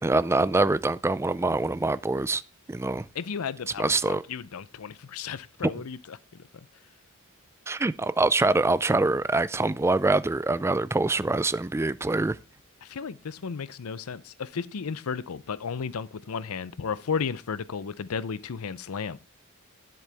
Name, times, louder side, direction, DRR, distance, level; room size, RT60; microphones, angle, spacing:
voice 1, 0.0-2.4 2.7-3.1 3.8-4.2 7.7-12.4, right 2 dB, 10° right, 0.3 m, -24 dB
voice 2, 3.1-6.2 12.8-19.2, left 6 dB, 90° left, 0.6 m, -34 dB
10.0 x 7.8 x 3.4 m
head